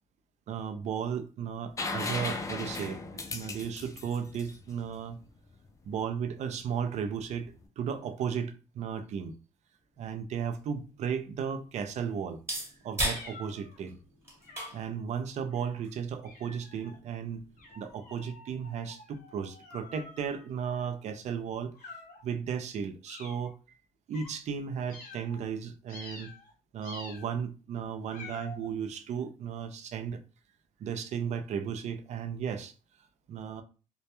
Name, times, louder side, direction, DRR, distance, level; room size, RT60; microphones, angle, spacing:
voice 1, 0.5-5.2 5.8-9.3 10.0-12.4 12.8-14.0 14.7-17.4 17.8-21.7 22.2-23.5 24.1-26.3 26.7-30.2 30.8-32.7 33.3-33.6, right 7 dB, 50° right, 0.4 m, -35 dB
sound 1, 1.8-5.5 7.3-7.4, left 3 dB, 20° left, 0.3 m, -36 dB
sound 2, 10.0-18.0, right 1 dB, 15° right, 1.0 m, -40 dB
Kitten meows, 13.1-13.8 14.4-14.9 15.5-15.8 16.2-17.0 17.6-21.0 21.7-22.3 23.1-23.5 24.1-24.3 24.9-25.4 25.9-26.5 26.8-27.4 28.1-28.7, left 3 dB, 70° left, 0.7 m, -49 dB
2.2 x 2.1 x 2.8 m
cardioid pair, 130°, 15 cm